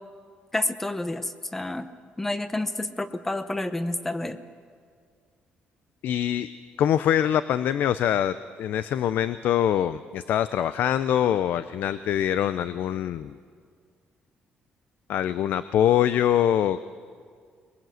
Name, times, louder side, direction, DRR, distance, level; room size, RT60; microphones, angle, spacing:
voice 1, 0.5-1.9 2.2-4.4, left 2 dB, 10° left, 12 dB, 0.8 m, -29 dB
voice 2, 6.0-6.5 6.8-13.4 15.1-16.8, left 10 dB, 60° left, 14 dB, 0.5 m, -24 dB
22.5 x 22.0 x 7.8 m, 2.1 s
cardioid pair, 180°, 4 cm